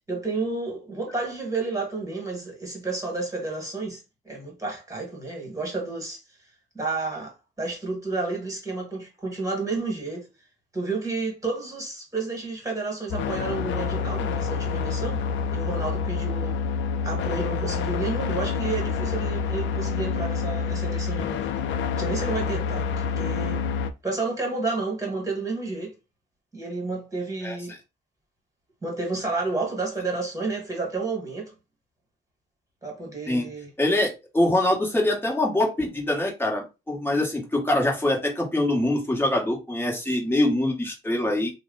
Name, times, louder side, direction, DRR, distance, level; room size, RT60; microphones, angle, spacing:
voice 1, 0.1-6.2 6.8-10.3 10.7-15.2 15.5-16.6 17.0-21.5 22.0-23.6 24.0-25.9 26.5-27.7 28.8-31.5 32.8-33.7, right 3 dB, 15° right, 1.6 m, -31 dB
sound 1, 13.1-23.9, left 5 dB, 75° left, 0.4 m, -27 dB
voice 2, 33.8-41.5, left 1 dB, 10° left, 1.3 m, -24 dB
2.8 x 2.2 x 3.9 m
cardioid pair, 90°, 20 cm